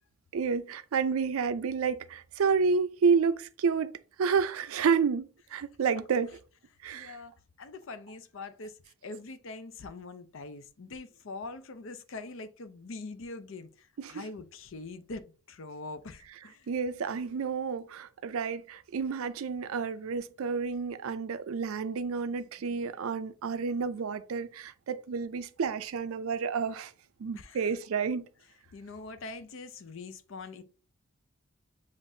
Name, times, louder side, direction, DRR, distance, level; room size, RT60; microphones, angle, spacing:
voice 1, 0.3-3.9 4.2-6.4 6.8-7.2 14.0-14.2 16.7-26.9 27.2-28.3, right 5 dB, 80° right, 0.4 m, -30 dB
voice 2, 6.9-16.7 27.3-27.6 28.7-30.6, left 3 dB, 70° left, 0.5 m, -43 dB
7.2 x 2.5 x 2.6 m
head